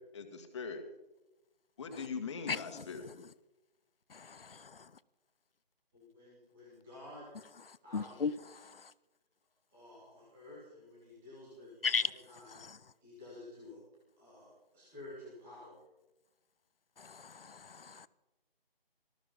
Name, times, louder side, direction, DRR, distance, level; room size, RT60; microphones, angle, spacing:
voice 1, 0.1-0.8 1.8-3.1, left 5 dB, 30° left, 1.8 m, -41 dB
voice 2, 4.1-4.9 7.9-8.9 11.8-12.1 12.6-12.8 17.0-18.1, left 5 dB, 70° left, 0.9 m, -36 dB
voice 3, 5.9-7.3 7.8-8.7 9.7-12.6 13.0-13.8 14.2-15.8, left 1 dB, ahead, 0.6 m, -52 dB
19.0 x 14.0 x 5.5 m
figure-of-eight pair, 160°, 30 cm